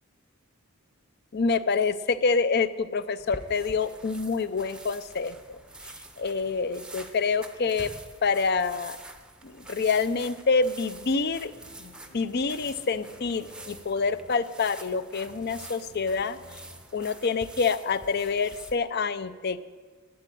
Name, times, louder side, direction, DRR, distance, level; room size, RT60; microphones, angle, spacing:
voice 1, 1.3-5.6 6.2-7.9 8.2-9.0 9.4-11.5 11.8-16.4 16.9-19.6, left 4 dB, 45° left, 14 dB, 0.5 m, -27 dB
sound 1, 3.2-18.7, right 2 dB, 5° right, 0.7 m, -46 dB
sound 2, 11.4-16.8, left 1 dB, 70° left, 2.2 m, -53 dB
12.5 x 9.0 x 7.6 m, 1.5 s
head